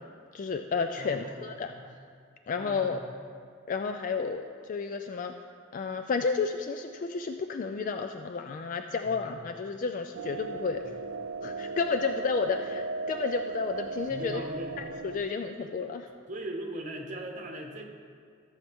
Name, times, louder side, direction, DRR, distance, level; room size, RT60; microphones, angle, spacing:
voice 1, 0.3-1.7 2.5-3.0 3.7-5.3 5.7-10.8 11.4-14.4 14.8-16.0, left 5 dB, 40° left, 6 dB, 0.3 m, -31 dB
voice 2, 1.0-1.9 2.6-3.1 9.0-9.5 10.8-11.0 14.1-15.0 15.6-15.8 16.3-17.9, right 1 dB, 40° right, 1 dB, 1.2 m, -40 dB
sound 1, 10.1-15.2, right 3 dB, 70° right, 0.5 m, -36 dB
14.0 x 7.2 x 3.6 m, 2.3 s
head